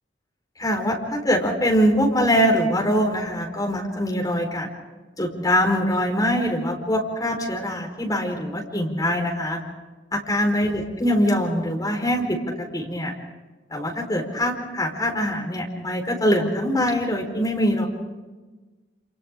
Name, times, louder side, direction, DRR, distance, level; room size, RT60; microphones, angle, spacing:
voice 1, 0.6-4.7 5.2-9.6 10.1-12.2 12.6-13.1 13.7-17.9, equal, 20° left, 0 dB, 4.5 m, -23 dB
28.5 x 28.5 x 3.8 m, 1.2 s
head